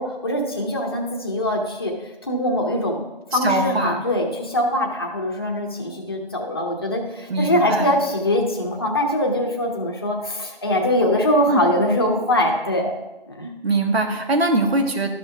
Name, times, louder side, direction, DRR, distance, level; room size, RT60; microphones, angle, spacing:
voice 1, 0.0-1.9 2.2-3.0 3.3-12.9 13.3-13.5, left 1 dB, 25° left, 0 dB, 0.9 m, -22 dB
voice 2, 3.4-4.0 7.3-7.9 11.5-11.6 13.6-15.1, right 2 dB, 80° right, 4 dB, 1.6 m, -21 dB
13.0 x 5.5 x 3.4 m, 1.1 s
figure-of-eight pair, 170°, 31 cm